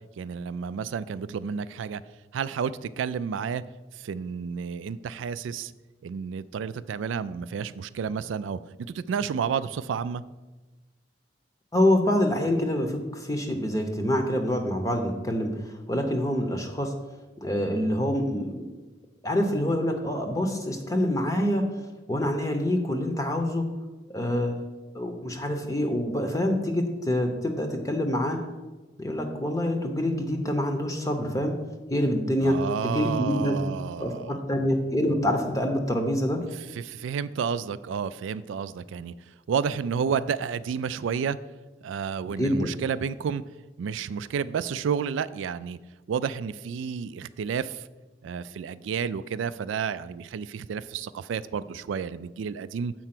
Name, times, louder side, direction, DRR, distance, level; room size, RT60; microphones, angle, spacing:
voice 1, 0.2-2.0 2.3-3.6 4.0-5.7 6.0-10.2 32.4-34.4 36.7-39.1 39.5-41.4 41.8-43.4 43.8-45.8 46.1-47.8 48.2-52.9, right 6 dB, 85° right, 15 dB, 0.3 m, -31 dB
voice 2, 11.7-16.9 17.4-18.7 19.2-21.6 22.1-23.7 24.1-24.6 24.9-28.4 29.0-31.5 31.9-32.6 32.8-33.6 34.0-36.4 42.4-42.7, left 1 dB, 20° left, 4 dB, 0.7 m, -26 dB
7.6 x 4.6 x 5.8 m, 1.2 s
head